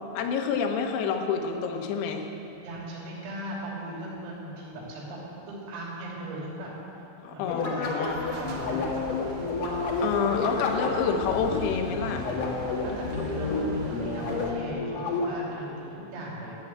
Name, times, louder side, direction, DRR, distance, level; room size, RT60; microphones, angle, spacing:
voice 1, 0.2-2.3 7.2-8.3 10.0-12.3, left 6 dB, 90° left, 3 dB, 3.8 m, -28 dB
voice 2, 2.6-5.2 5.5-6.7 7.3-8.9 12.8-16.5, right 1 dB, 90° right, -4 dB, 5.6 m, -38 dB
sound 1, 7.5-15.6, left 3 dB, 70° left, 1.6 m, -30 dB
sound 2, 8.1-14.5, equal, 65° right, 2.2 m, -41 dB
13.5 x 9.8 x 7.9 m, 2.9 s
omnidirectional pair, 5.9 m